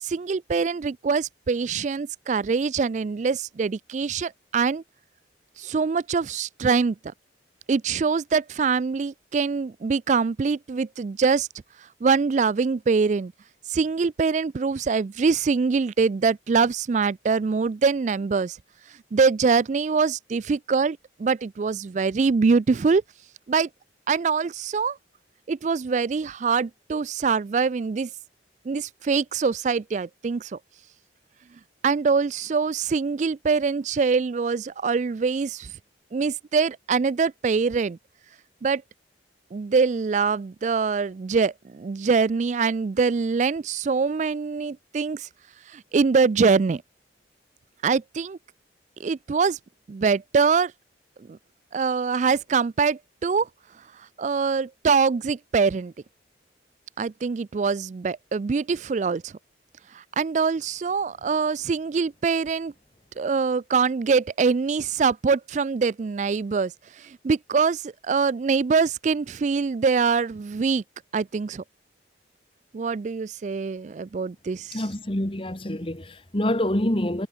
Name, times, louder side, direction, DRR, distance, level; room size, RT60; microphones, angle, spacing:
voice 1, 0.0-4.8 5.6-7.0 7.7-11.5 11.8-13.3 13.7-18.6 18.9-23.0 23.5-23.7 24.1-25.0 25.5-28.1 28.7-30.6 31.8-35.7 36.1-38.0 38.6-38.8 39.5-45.3 45.7-46.8 47.8-48.4 49.0-49.6 49.9-50.7 51.3-51.4 51.7-53.5 53.9-55.9 57.0-59.3 59.9-62.7 63.2-70.8 71.1-71.6 72.7-74.8, right 5 dB, 40° right, 0.3 m, -24 dB
voice 2, 74.7-77.3, left 1 dB, 30° left, 1.8 m, -26 dB
head